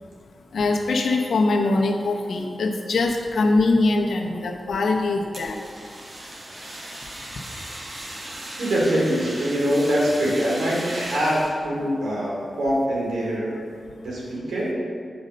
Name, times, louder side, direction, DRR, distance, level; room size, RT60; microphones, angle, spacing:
voice 1, 0.5-5.6, left 3 dB, 80° left, 2 dB, 0.9 m, -22 dB
Fire, 5.3-11.5, right 1 dB, 50° right, 1.9 m, -37 dB
voice 2, 8.6-13.6 14.0-14.7, equal, 90° right, -5 dB, 2.4 m, -23 dB
8.1 x 5.2 x 6.5 m, 2.3 s
cardioid pair, 55°, 0 cm